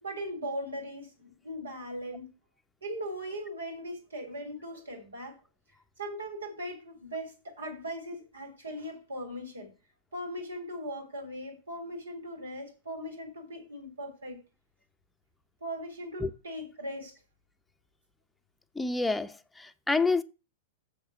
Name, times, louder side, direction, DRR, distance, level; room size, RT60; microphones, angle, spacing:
voice 1, 0.0-2.3 2.8-5.3 6.0-9.7 10.1-14.4 15.6-17.1, equal, 85° right, 3.5 m, -39 dB
voice 2, 18.8-20.2, left 3 dB, 5° left, 0.7 m, -28 dB
7.3 x 6.3 x 6.9 m
hypercardioid pair, 105°, 0 cm